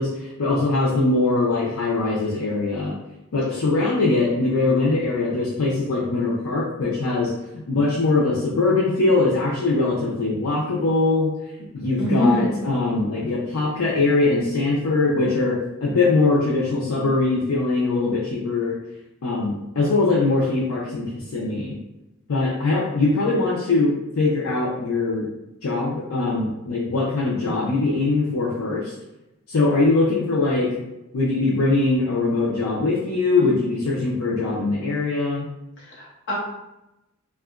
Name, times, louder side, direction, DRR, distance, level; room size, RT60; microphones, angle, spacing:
voice 1, 0.0-2.9 3.3-11.3 11.7-15.6 15.8-18.7 19.2-21.8 22.3-25.3 25.6-28.9 29.5-30.7 31.1-35.5, left 3 dB, 85° left, -5 dB, 0.5 m, -22 dB
voice 2, 12.0-12.5 27.4-27.5 35.8-36.4, equal, 60° left, -5 dB, 0.9 m, -23 dB
2.8 x 2.3 x 2.3 m, 0.93 s
head